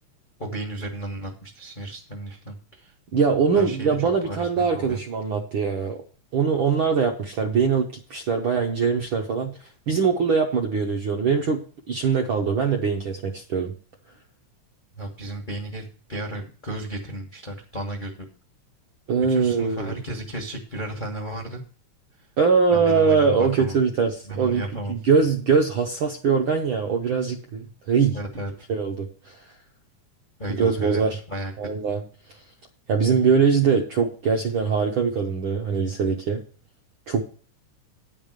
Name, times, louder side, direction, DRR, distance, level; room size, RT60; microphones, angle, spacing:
voice 1, 0.4-2.9 3.5-4.0 4.2-5.0 14.9-18.3 19.3-21.6 22.7-23.7 24.2-25.0 28.1-28.5 30.4-31.5, right 1 dB, 40° left, 1 dB, 0.6 m, -33 dB
voice 2, 3.1-6.0 6.3-9.6 9.9-11.6 11.9-13.7 19.1-19.9 22.4-24.6 24.9-28.2 28.7-29.4 30.6-31.2 31.6-32.0 32.9-36.4 37.1-37.2, right 5 dB, 65° right, 3 dB, 1.3 m, -22 dB
9.9 x 5.4 x 6.5 m, 0.40 s
omnidirectional pair, 3.3 m